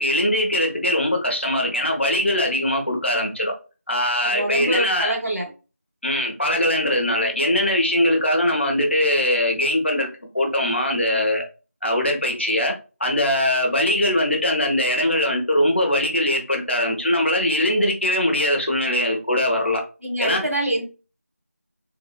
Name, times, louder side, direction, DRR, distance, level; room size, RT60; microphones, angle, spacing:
voice 1, 0.0-3.5 3.9-5.2 6.0-10.1 10.3-11.4 11.8-12.7 13.0-19.8 20.2-20.4, left 1 dB, 50° left, 1.0 m, -21 dB
voice 2, 4.2-5.5 20.0-20.8, right 1 dB, 80° right, 1.6 m, -25 dB
3.8 x 2.6 x 2.3 m
figure-of-eight pair, 175°, 8 cm